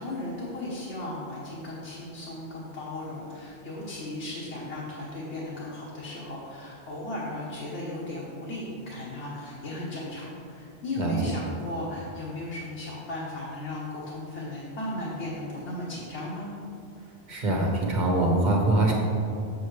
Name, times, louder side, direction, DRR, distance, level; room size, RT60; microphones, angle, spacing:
voice 1, 0.0-16.5, left 1 dB, 85° left, -6 dB, 1.4 m, -36 dB
voice 2, 17.3-18.9, right 2 dB, 45° right, -1 dB, 1.2 m, -23 dB
7.6 x 7.0 x 3.2 m, 2.6 s
omnidirectional pair, 1.2 m